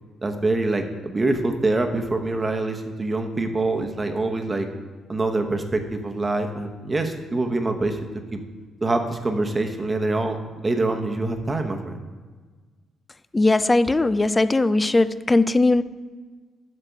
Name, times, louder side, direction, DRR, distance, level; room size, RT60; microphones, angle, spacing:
voice 1, 0.2-4.7 5.1-8.0 8.3-8.4 8.8-12.0, right 2 dB, 25° right, 5 dB, 1.0 m, -25 dB
voice 2, 13.3-15.8, left 2 dB, 20° left, 15 dB, 0.3 m, -19 dB
8.2 x 6.6 x 4.6 m, 1.4 s
cardioid pair, 90°, 0 cm